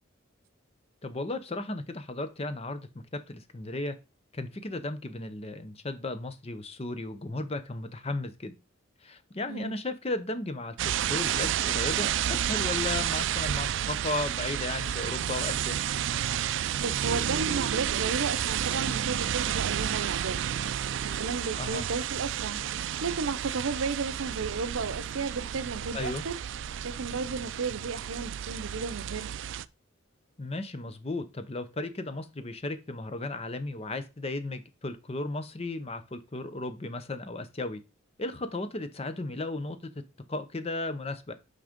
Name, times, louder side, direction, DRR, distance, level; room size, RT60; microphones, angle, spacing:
voice 1, 1.0-4.0 4.3-8.5 9.0-15.8 21.6-21.9 25.9-26.2 30.4-37.8 38.2-39.8 40.3-41.3, left 2 dB, 30° left, 0.7 m, -35 dB
sound 1, 10.8-29.7, right 10 dB, 60° right, 0.3 m, -31 dB
voice 2, 16.8-20.4 21.2-26.4 26.8-29.4, right 4 dB, 80° right, 0.7 m, -34 dB
6.1 x 4.9 x 5.1 m
head